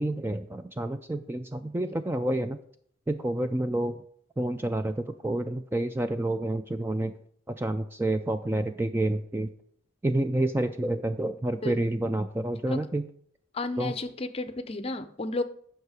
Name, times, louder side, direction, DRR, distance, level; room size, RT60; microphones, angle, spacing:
voice 1, 0.0-2.6 3.1-4.0 4.4-7.1 7.5-9.5 10.0-13.0 13.8-13.9, right 1 dB, 10° right, 8 dB, 0.3 m, -29 dB
voice 2, 13.5-15.4, left 2 dB, 30° left, 10 dB, 0.6 m, -32 dB
9.4 x 5.7 x 4.9 m, 0.62 s
head